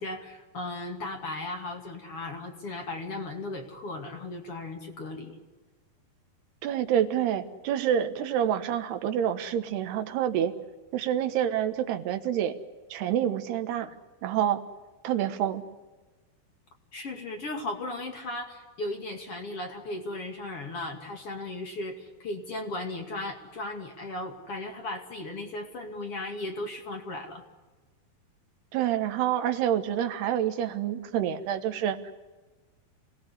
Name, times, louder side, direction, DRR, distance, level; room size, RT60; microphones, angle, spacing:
voice 1, 0.0-5.4 16.9-27.4, left 2 dB, 40° left, 3 dB, 2.9 m, -36 dB
voice 2, 6.6-10.5 10.9-12.6 12.9-13.9 14.2-14.6 15.0-15.6 28.7-32.1, right 10 dB, 90° right, 8 dB, 3.4 m, -27 dB
27.0 x 18.5 x 9.8 m, 1.3 s
omnidirectional pair, 4.6 m